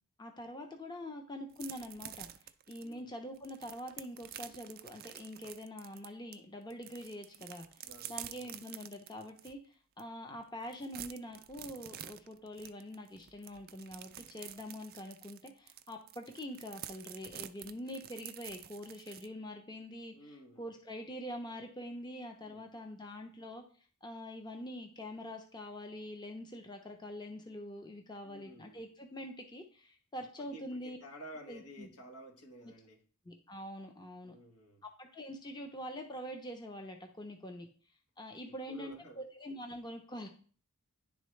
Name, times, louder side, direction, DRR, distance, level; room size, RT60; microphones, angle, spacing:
voice 1, 0.2-2.3 2.7-7.7 8.1-9.6 10.0-20.1 20.6-23.6 24.0-31.0 31.5-31.9 32.6-32.7 33.2-34.3 34.8-37.7 38.2-40.3, equal, 20° left, 0.7 m, -45 dB
sound 1, 1.5-6.4 6.7-9.5 10.0-10.1 10.4-19.3, right 12 dB, 40° right, 0.3 m, -48 dB
voice 2, 7.8-8.6 20.1-20.7 22.5-22.6 28.2-28.9 30.4-33.0 34.2-34.8 38.5-39.2, equal, 85° left, 1.5 m, -52 dB
10.5 x 3.8 x 3.2 m
head